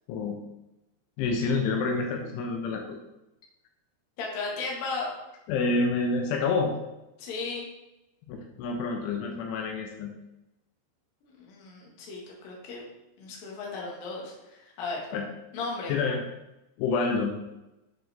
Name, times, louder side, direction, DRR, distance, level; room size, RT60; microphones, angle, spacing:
voice 1, 0.1-0.4 1.2-3.0 5.5-6.7 8.3-10.1 15.1-15.3 15.9-16.2 16.8-17.4, left 4 dB, 85° left, 2 dB, 3.3 m, -28 dB
voice 2, 4.2-5.1 7.2-7.6 11.2-12.8 13.2-15.0 15.5-15.9, left 3 dB, 55° left, -2 dB, 3.0 m, -35 dB
8.6 x 6.4 x 3.5 m, 0.94 s
omnidirectional pair, 5.5 m